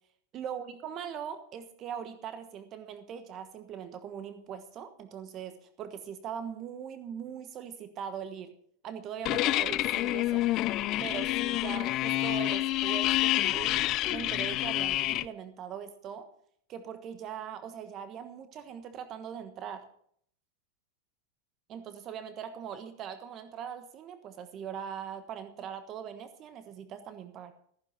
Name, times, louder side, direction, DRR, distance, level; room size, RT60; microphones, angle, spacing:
voice 1, 0.3-8.5 8.8-10.4 11.0-13.8 14.1-16.3 16.7-19.8 21.7-27.5, right 8 dB, 35° right, 10 dB, 1.2 m, -41 dB
sound 1, 9.2-15.2, left 16 dB, 40° left, 0.5 m, -28 dB
14.0 x 10.0 x 5.8 m, 0.63 s
hypercardioid pair, 125°, 0 cm